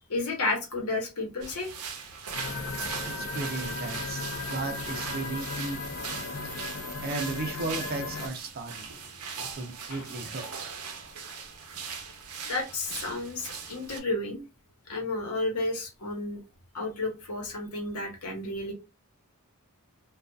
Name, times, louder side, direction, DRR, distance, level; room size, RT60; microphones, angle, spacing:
voice 1, 0.1-1.7 9.9-10.0 12.5-14.4 14.9-16.4 16.7-18.7, left 2 dB, 85° left, 1 dB, 0.9 m, -32 dB
sound 1, 1.4-14.0, right 6 dB, 90° right, 0.6 m, -40 dB
sound 2, 2.3-8.3, left 3 dB, 65° left, 0.5 m, -36 dB
voice 2, 3.0-4.2 4.5-5.8 7.0-8.9 9.4-10.7, right 3 dB, 45° right, 5 dB, 0.5 m, -35 dB
2.5 x 2.3 x 2.2 m, 0.26 s
head